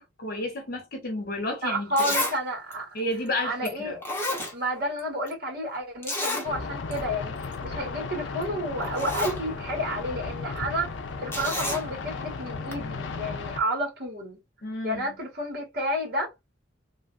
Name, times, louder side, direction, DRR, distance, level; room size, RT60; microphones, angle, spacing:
voice 1, 0.0-2.2 2.9-4.0 14.6-15.2, left 1 dB, 50° left, 0.9 m, -32 dB
Zipper (clothing), 1.4-1.5 2.0-2.4 2.7-2.8 3.6-3.7 4.0-5.0 5.3-5.4 6.0-6.5 6.9-7.0 7.3-7.5 8.4-8.5 8.8-9.4 11.3-11.8 12.7-12.8, left 1 dB, 10° left, 0.8 m, -30 dB
voice 2, 1.6-2.9 3.4-4.0 4.5-14.4 14.8-16.3, equal, 55° right, 1.9 m, -31 dB
sound 1, 6.4-13.6, left 4 dB, 75° left, 0.5 m, -35 dB
3.2 x 2.4 x 2.4 m
head